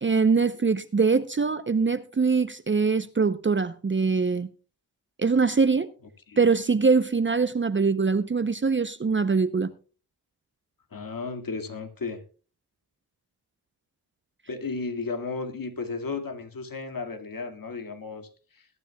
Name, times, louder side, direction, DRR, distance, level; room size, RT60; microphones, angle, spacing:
voice 1, 0.0-4.5 5.2-5.9 6.4-9.7, right 4 dB, 30° right, 0.8 m, -23 dB
voice 2, 10.9-12.2 14.5-18.7, left 4 dB, 55° left, 2.1 m, -34 dB
21.5 x 9.9 x 2.3 m
cardioid pair, 50°, 41 cm